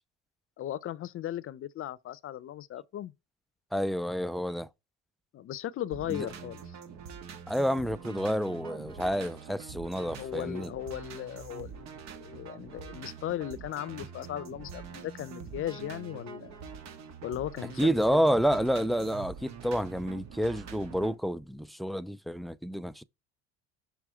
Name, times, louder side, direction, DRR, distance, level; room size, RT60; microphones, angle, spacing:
voice 1, 0.6-3.1 5.3-6.6 10.2-16.6 17.2-18.2, left 12 dB, 45° left, 0.7 m, -37 dB
voice 2, 3.7-4.7 6.1-6.3 7.5-10.7 17.8-23.0, equal, ahead, 0.4 m, -29 dB
sound 1, 5.9-21.1, right 7 dB, 60° right, 1.5 m, -45 dB
6.4 x 3.3 x 4.6 m
supercardioid pair, 95°, 31 cm